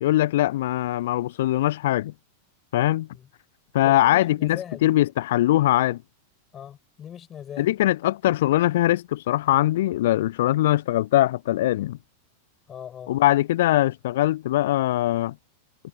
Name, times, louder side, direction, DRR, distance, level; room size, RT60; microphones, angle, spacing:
voice 1, 0.0-2.1 2.7-3.1 3.7-6.0 7.6-12.0 13.1-15.4, left 14 dB, 55° left, 0.8 m, -21 dB
voice 2, 3.8-5.0 6.5-7.7 12.7-13.1, left 9 dB, 25° left, 6.4 m, -40 dB
figure-of-eight pair, 90°, 0 cm